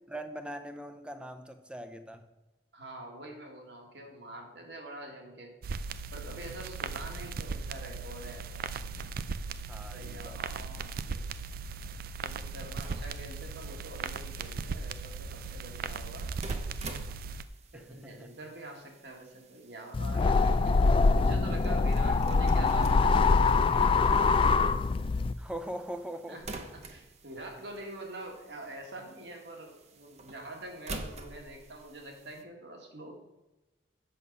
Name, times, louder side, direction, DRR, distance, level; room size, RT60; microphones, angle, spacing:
voice 1, 0.1-2.3 6.4-6.5 9.7-10.4 17.7-18.3 21.3-21.6 25.3-26.4, right 1 dB, 5° right, 7 dB, 0.6 m, -41 dB
voice 2, 2.7-5.5 6.1-8.6 9.8-11.3 12.2-16.4 17.7-24.8 26.3-33.1, right 1 dB, 75° right, 1 dB, 1.8 m, -45 dB
sound 1, 5.6-17.4, right 4 dB, 55° right, 0.4 m, -38 dB
sound 2, 12.8-32.4, right 2 dB, 40° right, 0.8 m, -48 dB
sound 3, 19.9-25.3, left 4 dB, 30° left, 0.3 m, -24 dB
7.7 x 6.4 x 5.4 m, 1.1 s
head